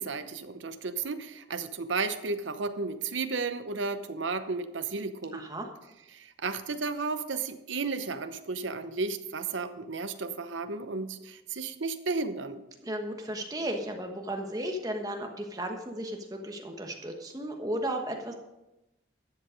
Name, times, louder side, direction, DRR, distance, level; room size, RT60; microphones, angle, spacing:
voice 1, 0.0-5.5 6.1-12.6, right 4 dB, 80° right, 10 dB, 0.8 m, -33 dB
voice 2, 5.3-5.7 12.8-18.3, right 1 dB, 20° right, 3 dB, 1.2 m, -34 dB
12.5 x 7.6 x 5.1 m, 0.97 s
head